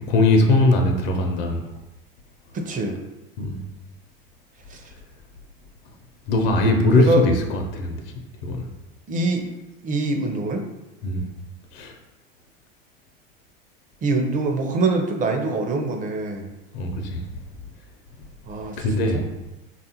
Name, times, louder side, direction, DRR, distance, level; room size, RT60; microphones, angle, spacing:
voice 1, 0.1-1.6 3.4-3.6 6.3-8.0 8.4-8.7 11.0-11.3 11.7-11.9 16.7-17.2 18.8-19.3, left 2 dB, 70° left, 3 dB, 0.6 m, -20 dB
voice 2, 2.5-3.0 4.7-4.8 7.0-7.2 9.1-9.4 9.8-10.6 14.0-16.5 18.5-18.8 19.1-19.2, right 2 dB, 25° right, 3 dB, 0.5 m, -24 dB
3.4 x 2.5 x 2.8 m, 1.0 s
supercardioid pair, 100°, 30 cm